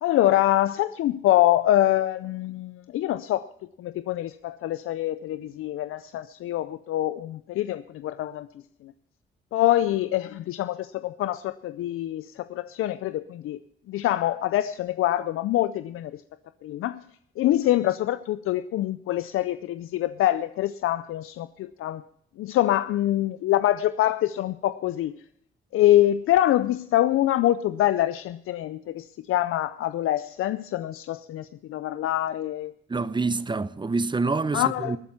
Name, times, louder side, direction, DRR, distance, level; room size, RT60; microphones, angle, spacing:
voice 1, 0.0-3.5 3.8-8.5 8.8-8.9 9.5-13.6 13.9-16.2 16.6-17.0 17.4-22.0 22.4-25.2 25.7-32.7 34.5-35.0, left 13 dB, 85° left, 0.5 m, -25 dB
voice 2, 32.9-35.0, right 3 dB, 20° right, 0.7 m, -26 dB
19.5 x 8.8 x 5.7 m
cardioid pair, 75°, 21 cm